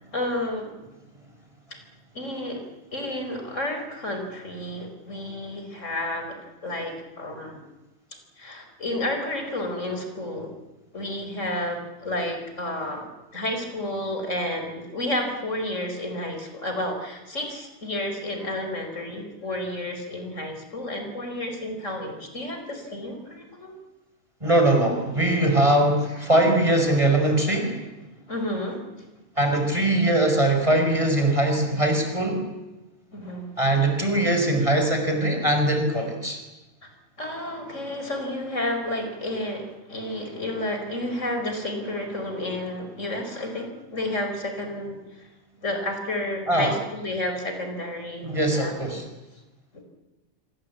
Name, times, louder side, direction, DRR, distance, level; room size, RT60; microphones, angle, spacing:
voice 1, 0.1-0.7 2.1-2.6 2.9-6.4 6.6-7.6 8.4-10.5 10.9-23.8 28.3-28.8 33.1-33.5 36.8-36.9 37.2-45.3 45.6-48.7, left 1 dB, 65° left, 5 dB, 5.2 m, -31 dB
voice 2, 24.4-27.8 29.4-32.4 33.6-36.4 46.5-46.8 48.2-49.0, right 1 dB, 25° right, 4 dB, 5.7 m, -21 dB
26.5 x 26.0 x 8.6 m, 1.1 s
omnidirectional pair, 1.4 m